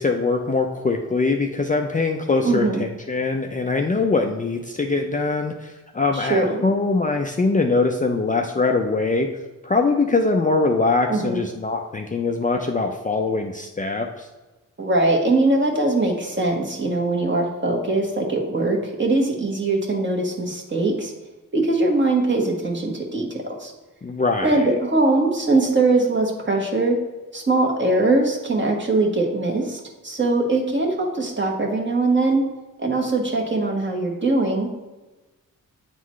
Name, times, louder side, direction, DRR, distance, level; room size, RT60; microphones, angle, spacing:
voice 1, 0.0-9.3 9.6-14.3 24.0-24.7, left 3 dB, 25° left, 3 dB, 0.5 m, -22 dB
voice 2, 2.4-2.8 6.1-6.6 11.1-11.4 14.8-21.1 21.5-23.7 24.4-27.0 27.3-32.5 32.8-34.7, right 2 dB, 35° right, 0 dB, 1.4 m, -21 dB
8.2 x 3.9 x 3.1 m, 1.1 s
cardioid pair, 70°, 34 cm